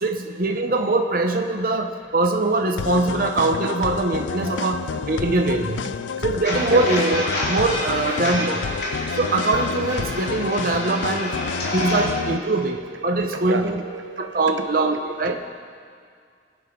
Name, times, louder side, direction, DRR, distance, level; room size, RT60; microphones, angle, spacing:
voice 1, 0.0-5.8 6.2-8.6 9.2-11.3 11.7-12.8 13.0-13.8 14.2-15.4, right 2 dB, 50° right, 3 dB, 0.7 m, -22 dB
sound 1, 2.8-12.4, left 6 dB, 80° left, 0.4 m, -30 dB
sound 2, 6.4-12.0, left 1 dB, 65° left, 3.2 m, -28 dB
voice 2, 11.6-12.3 12.6-15.5, right 3 dB, 90° right, 6 dB, 1.0 m, -33 dB
23.0 x 11.0 x 3.7 m, 2.2 s
head